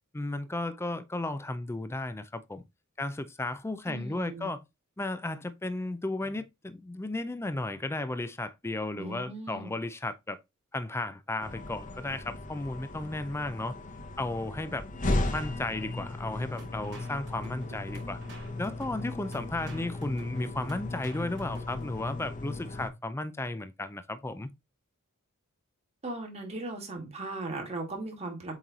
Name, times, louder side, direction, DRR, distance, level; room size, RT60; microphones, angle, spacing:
voice 1, 0.1-2.6 3.0-4.6 5.0-10.4 10.7-13.7 14.2-14.8 15.3-18.2 18.6-24.5, left 2 dB, 10° left, 0.4 m, -34 dB
voice 2, 3.9-4.5 9.0-9.7 26.0-28.5, right 2 dB, 30° right, 2.0 m, -38 dB
sound 1, 11.4-22.9, left 2 dB, 35° left, 0.9 m, -36 dB
sound 2, 16.6-22.1, right 2 dB, 55° right, 3.0 m, -49 dB
7.6 x 3.1 x 4.0 m
head